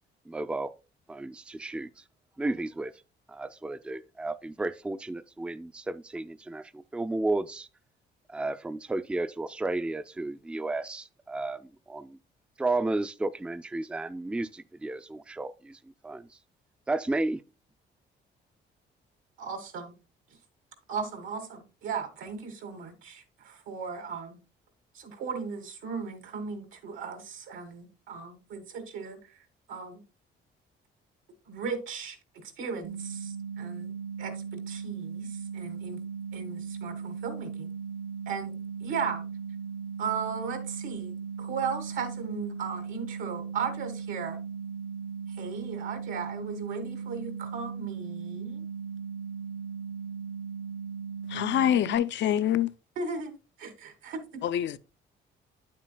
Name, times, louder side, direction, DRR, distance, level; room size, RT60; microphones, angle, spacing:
voice 1, 0.3-0.7 1.1-1.9 2.4-2.9 3.3-7.7 8.3-11.6 11.9-12.2 12.6-16.3 16.9-17.4, right 2 dB, 5° right, 0.4 m, -33 dB
voice 2, 19.4-19.9 20.9-24.4 24.9-29.4 29.7-30.0 31.5-36.0 36.3-37.7 38.3-39.2 40.0-44.4 45.3-48.6 53.0-54.4, right 5 dB, 90° right, 1.6 m, -37 dB
sound 1, 32.8-52.0, right 6 dB, 45° right, 0.7 m, -38 dB
voice 3, 51.3-52.7 54.4-54.8, left 10 dB, 65° left, 0.5 m, -25 dB
9.0 x 7.5 x 2.2 m
cardioid pair, 90°, 20 cm